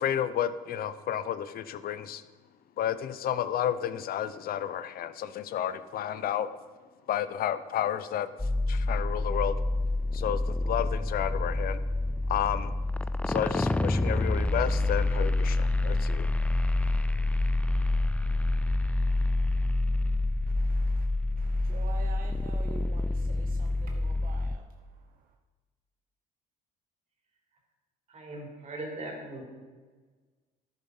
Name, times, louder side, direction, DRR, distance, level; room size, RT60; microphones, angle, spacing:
voice 1, 0.0-2.2 2.8-6.5 7.1-9.6 10.1-11.8 12.3-12.7 13.3-16.3, left 10 dB, 60° left, 13 dB, 0.7 m, -31 dB
sound 1, 8.4-24.6, left 2 dB, 10° left, 0.4 m, -27 dB
voice 2, 20.5-21.1 21.4-25.3, right 6 dB, 55° right, 4 dB, 1.0 m, -48 dB
voice 3, 28.1-29.5, right 2 dB, 40° right, 1 dB, 3.8 m, -39 dB
12.0 x 10.5 x 5.5 m, 1.4 s
cardioid pair, 110°, 17 cm